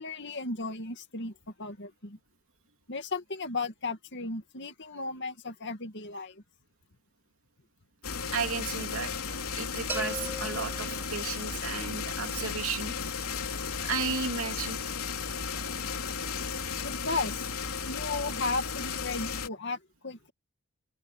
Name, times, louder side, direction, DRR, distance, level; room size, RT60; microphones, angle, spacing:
voice 1, 0.0-2.2 2.9-6.4 16.8-17.5 17.9-20.3, left 3 dB, 55° left, 2.3 m, -35 dB
sound 1, 8.0-19.5, left 5 dB, 80° left, 3.3 m, -34 dB
voice 2, 8.3-9.1 9.5-13.0 13.8-14.8, right 5 dB, 65° right, 3.0 m, -34 dB
sound 2, 9.9-11.7, right 1 dB, 10° right, 1.9 m, -40 dB
head